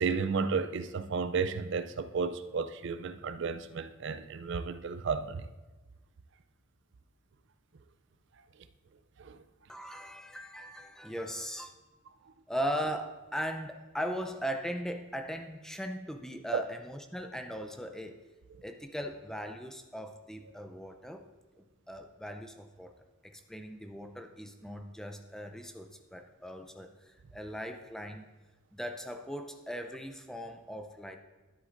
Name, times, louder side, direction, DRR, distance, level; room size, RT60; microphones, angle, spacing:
voice 1, 0.0-5.5 9.2-9.4 16.5-16.6, right 5 dB, 60° right, 11 dB, 0.4 m, -32 dB
voice 2, 9.7-11.7 12.5-18.2 18.6-21.2 21.9-22.9 23.2-28.3 28.7-31.2, equal, 5° left, 5 dB, 0.5 m, -39 dB
12.5 x 7.9 x 2.6 m, 1.2 s
head